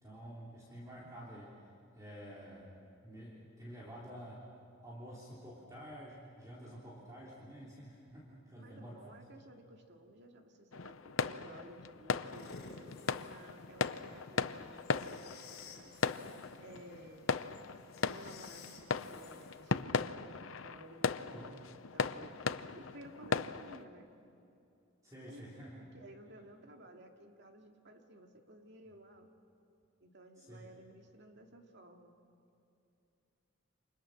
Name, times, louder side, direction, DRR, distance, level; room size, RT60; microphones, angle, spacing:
voice 1, 0.0-1.5 2.0-2.7 3.0-4.5 4.8-9.0 9.4-9.5 21.3-21.5 25.0-25.8 30.4-30.7, equal, 15° right, -6 dB, 3.4 m, -50 dB
voice 2, 8.6-12.5 13.0-16.0 16.6-17.4 18.1-24.1 25.3-29.3 30.0-32.1, right 1 dB, 55° right, 3 dB, 2.4 m, -55 dB
sound 1, 10.7-23.8, left 5 dB, 80° left, 0.7 m, -38 dB
sound 2, 12.2-19.8, left 4 dB, 55° left, 4.8 m, -56 dB
29.5 x 27.0 x 6.5 m, 2.7 s
head